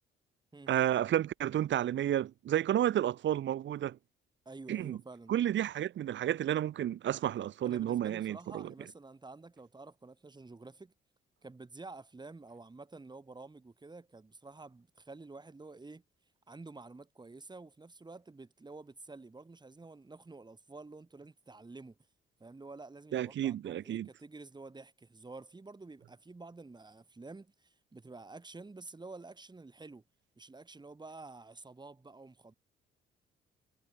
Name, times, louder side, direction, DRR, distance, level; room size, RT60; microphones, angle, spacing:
voice 1, 0.7-4.0 4.7-5.0 5.3-8.7 23.1-24.1, right 11 dB, 70° right, 1.8 m, -31 dB
voice 2, 4.5-5.3 7.6-10.9 11.4-16.0 16.5-22.0 22.4-30.0 30.4-32.5, right 3 dB, 20° right, 6.8 m, -50 dB
cardioid pair, 90°, 20 cm